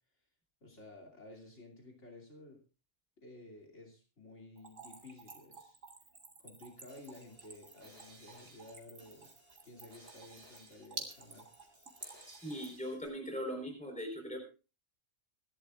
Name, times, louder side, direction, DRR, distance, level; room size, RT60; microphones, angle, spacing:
voice 1, 0.6-2.6 3.2-5.8 6.4-9.3 9.6-11.5, left 2 dB, 65° left, 3 dB, 3.2 m, -54 dB
Splash splatter / Trickle dribble, 4.6-12.9, right 3 dB, 75° right, 2.8 m, -50 dB
sound 1, 6.7-13.1, right 1 dB, 55° right, 8.3 m, -60 dB
voice 2, 12.3-14.4, equal, 5° left, 3 dB, 4.3 m, -40 dB
25.5 x 12.0 x 2.5 m, 0.33 s
omnidirectional pair, 1.3 m